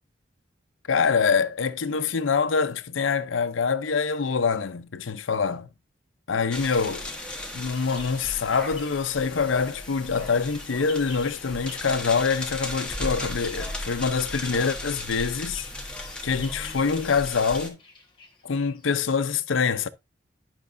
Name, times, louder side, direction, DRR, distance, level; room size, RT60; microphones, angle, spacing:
voice 1, 0.9-5.7 6.3-7.1 7.5-15.7 16.0-17.8 18.4-19.9, left 5 dB, 85° left, 0.6 m, -25 dB
sound 1, 6.5-17.7, left 1 dB, 5° left, 1.1 m, -36 dB
Bird vocalization bird call bird song, 6.9-9.2 9.5-19.0, left 4 dB, 25° left, 1.4 m, -49 dB
11.0 x 5.9 x 2.5 m
head